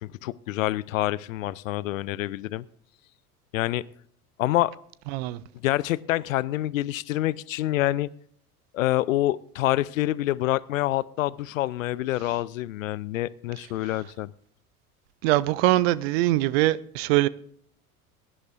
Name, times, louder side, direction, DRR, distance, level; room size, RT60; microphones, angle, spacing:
voice 1, 0.0-2.6 3.5-3.8 4.4-4.7 5.6-8.1 8.7-14.3, left 15 dB, 60° left, 0.6 m, -27 dB
voice 2, 5.1-5.4 15.2-17.3, right 17 dB, 45° right, 0.6 m, -22 dB
22.5 x 11.0 x 2.5 m
figure-of-eight pair, 80°, 45 cm